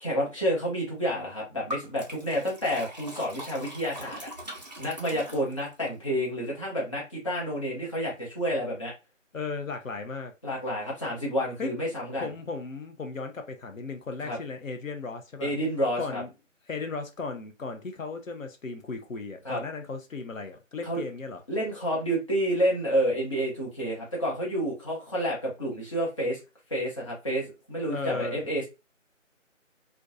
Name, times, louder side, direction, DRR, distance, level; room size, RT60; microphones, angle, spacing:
voice 1, 0.0-4.3 4.8-8.9 10.4-12.3 14.2-14.4 15.4-16.2 19.4-19.6 20.8-21.0 21.5-26.4 26.7-28.7, equal, 25° left, 0.8 m, -29 dB
Liquid, 1.7-5.9, equal, 35° right, 0.5 m, -41 dB
voice 2, 9.3-10.3 11.6-11.7 12.2-15.5 16.0-16.3 16.7-21.4 27.9-28.4, left 4 dB, 85° left, 0.7 m, -36 dB
2.5 x 2.2 x 2.5 m
figure-of-eight pair, 155°, 39 cm